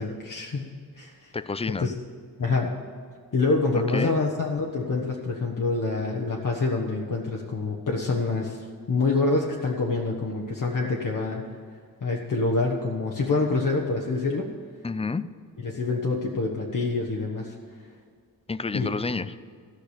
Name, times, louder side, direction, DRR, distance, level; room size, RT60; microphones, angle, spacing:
voice 1, 0.0-1.3 1.8-1.9 2.4-2.8 3.3-11.4 12.0-14.5 15.6-17.5 18.7-18.9, left 3 dB, 55° left, -1 dB, 1.3 m, -26 dB
voice 2, 1.3-1.9 3.9-4.2 14.8-15.2 18.5-19.3, left 4 dB, 15° left, 14 dB, 0.4 m, -29 dB
15.0 x 6.1 x 8.4 m, 2.1 s
wide cardioid pair, 140°, 37 cm